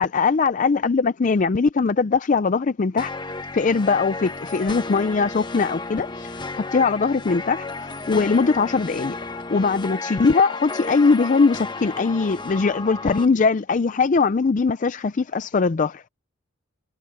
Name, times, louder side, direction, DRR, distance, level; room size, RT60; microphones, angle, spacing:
voice 1, 0.0-3.1 3.5-16.0, left 4 dB, 40° left, 0.5 m, -21 dB
sound 1, 3.0-13.3, left 3 dB, 25° left, 1.0 m, -33 dB
head